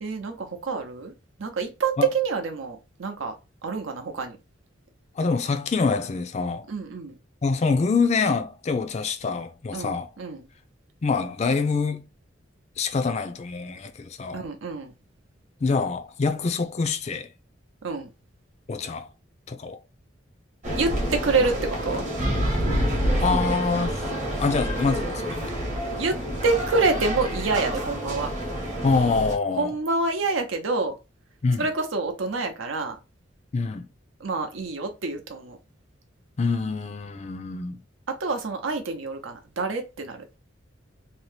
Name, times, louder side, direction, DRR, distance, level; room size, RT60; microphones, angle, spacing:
voice 1, 0.0-1.1 1.4-3.3 3.6-4.4 6.7-7.1 9.7-10.5 14.3-14.9 17.8-18.1 20.7-22.0 26.0-28.3 29.6-31.0 31.6-33.0 34.2-35.6 38.1-40.2, right 3 dB, 90° right, 0.7 m, -27 dB
voice 2, 5.2-6.7 7.4-10.1 11.0-12.0 12.8-14.5 15.6-17.3 18.7-19.1 19.5-19.8 23.2-24.0 24.4-25.5 28.8-29.7 31.4-31.7 33.5-33.9 36.4-37.8, left 4 dB, 35° left, 0.4 m, -25 dB
sound 1, 20.6-29.3, equal, 40° right, 0.8 m, -28 dB
2.7 x 2.1 x 3.2 m
head